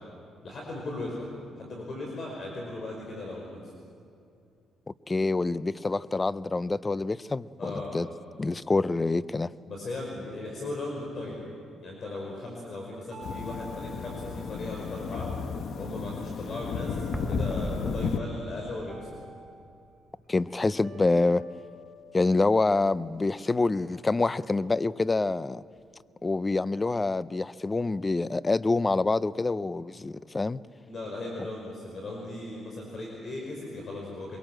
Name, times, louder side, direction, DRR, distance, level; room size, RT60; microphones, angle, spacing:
voice 1, 0.4-1.3 1.6-3.6 7.6-7.9 9.7-11.4 11.8-15.3 15.8-19.0 30.9-34.4, left 2 dB, 50° left, -1 dB, 5.3 m, -37 dB
voice 2, 5.1-8.1 8.4-9.5 20.3-21.4 22.1-25.6 26.2-30.6, left 3 dB, 25° left, 18 dB, 0.5 m, -26 dB
sound 1, 13.1-15.5 16.9-17.9 18.9-20.2 20.8-23.2, left 1 dB, 25° right, 3.9 m, -49 dB
sound 2, 13.2-18.2, left 6 dB, 65° left, 1.2 m, -34 dB
sound 3, 17.1-20.2 20.4-20.6 21.1-21.2 25.8-25.9, equal, 5° left, 1.2 m, -38 dB
24.0 x 22.5 x 7.7 m, 2.5 s
cardioid pair, 90°, 0 cm